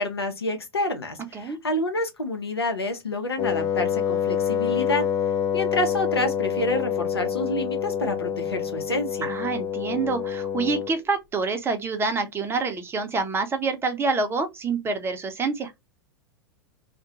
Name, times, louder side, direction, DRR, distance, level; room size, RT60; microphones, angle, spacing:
voice 1, 0.0-5.1 5.5-9.3, left 2 dB, 85° left, 0.7 m, -28 dB
Wind instrument woodwind instrument, 3.4-11.0, left 8 dB, 25° left, 0.4 m, -27 dB
voice 2, 9.2-15.7, right 4 dB, 20° right, 0.6 m, -27 dB
2.3 x 2.2 x 2.7 m
figure-of-eight pair, 95°, 13 cm